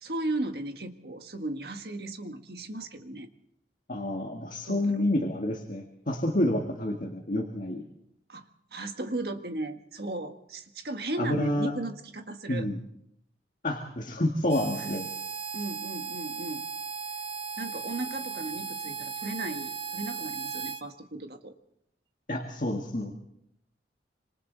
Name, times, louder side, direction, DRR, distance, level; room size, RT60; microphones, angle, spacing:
voice 1, 0.0-3.3 4.7-5.0 8.3-8.5 8.7-12.7 14.8-15.0 15.5-16.6 17.6-21.5, right 2 dB, 60° right, 5 dB, 1.8 m, -36 dB
voice 2, 3.9-7.8 11.2-11.7 12.5-12.8 13.6-15.1 22.3-23.1, left 1 dB, 45° left, 1 dB, 2.0 m, -29 dB
Harmonica, 14.5-20.8, right 6 dB, 30° right, 0.8 m, -36 dB
27.0 x 26.5 x 4.1 m, 0.77 s
head